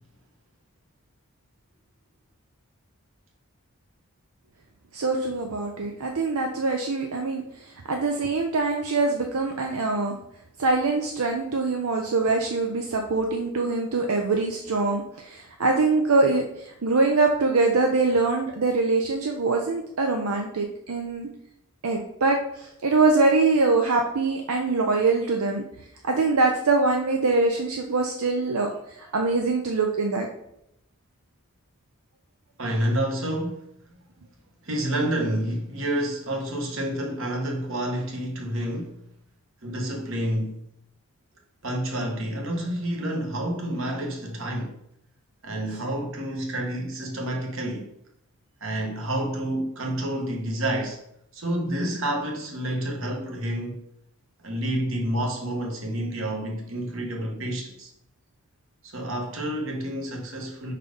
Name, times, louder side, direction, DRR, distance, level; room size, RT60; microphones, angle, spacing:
voice 1, 4.9-7.4 7.9-10.1 10.6-21.3 21.8-25.6 26.0-28.7 29.0-30.3, right 3 dB, 80° right, 0.7 m, -23 dB
voice 2, 32.6-33.7 34.6-39.0 39.6-40.6 41.6-44.8 45.4-47.9 48.6-51.0 51.3-53.8 54.4-57.9 58.8-60.7, right 1 dB, 60° right, 1.3 m, -29 dB
5.1 x 4.4 x 5.1 m
head